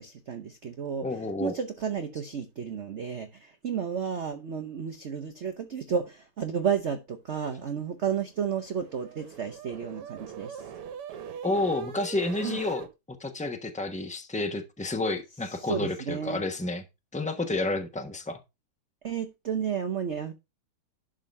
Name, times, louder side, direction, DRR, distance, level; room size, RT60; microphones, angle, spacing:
voice 1, 0.3-1.0 1.4-10.6 12.4-12.6 15.6-16.4 19.0-20.3, right 7 dB, 65° right, 0.7 m, -32 dB
voice 2, 1.0-1.5 11.4-12.9 13.2-16.8 17.1-18.4, left 2 dB, 10° left, 0.4 m, -30 dB
sound 1, 8.2-12.9, right 8 dB, 85° right, 2.0 m, -42 dB
11.5 x 4.0 x 5.3 m
omnidirectional pair, 2.4 m